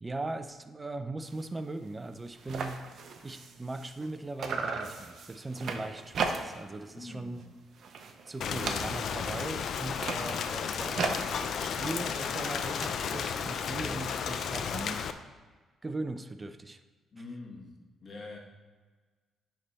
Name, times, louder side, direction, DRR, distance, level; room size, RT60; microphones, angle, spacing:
voice 1, 0.0-2.8 3.2-7.4 8.3-11.1 11.6-15.0 15.8-16.8, right 2 dB, 20° right, 9 dB, 0.4 m, -39 dB
sound 1, 1.2-1.5 1.8-1.9 2.1-4.1 4.4-6.8 7.1-7.5 7.8-9.3 9.8-12.9, right 4 dB, 60° right, 0.7 m, -37 dB
voice 2, 6.9-7.3 8.7-8.9 17.1-17.7 18.0-18.4, left 3 dB, 40° left, -1 dB, 1.5 m, -44 dB
Rain, 8.4-15.1, left 7 dB, 65° left, 0.4 m, -33 dB
9.4 x 3.4 x 4.2 m, 1.4 s
cardioid pair, 90°, 0 cm